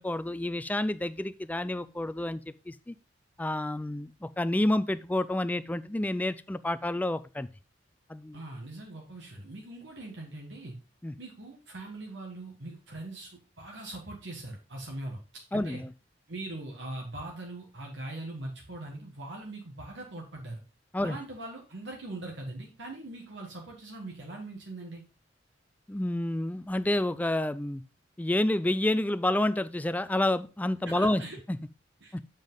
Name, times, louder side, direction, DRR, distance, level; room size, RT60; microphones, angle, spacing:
voice 1, 0.0-2.9 3.4-7.5 8.1-8.4 11.0-11.1 15.5-15.9 20.9-21.2 25.9-27.8 28.2-31.2 31.5-31.6 32.1-32.2, left 1 dB, 10° left, 14 dB, 0.3 m, -29 dB
voice 2, 8.3-10.7 11.2-15.2 15.5-15.8 16.3-20.6 21.0-25.0 30.8-31.4 32.0-32.1, right 2 dB, 70° right, 0 dB, 1.6 m, -41 dB
7.3 x 5.3 x 3.8 m, 0.31 s
head